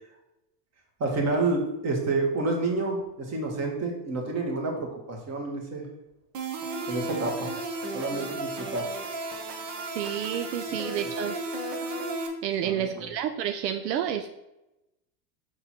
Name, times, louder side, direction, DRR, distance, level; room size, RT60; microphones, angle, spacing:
voice 1, 1.0-5.9 6.9-7.5 7.9-8.9 10.7-10.8 12.6-13.1, right 3 dB, 30° right, 1 dB, 1.7 m, -29 dB
sound 1, 6.3-12.3, right 2 dB, 55° right, 1.3 m, -34 dB
voice 2, 10.0-11.4 12.4-14.3, right 9 dB, 80° right, 7 dB, 0.6 m, -30 dB
6.1 x 3.8 x 4.4 m, 0.93 s
supercardioid pair, 110°, 50 cm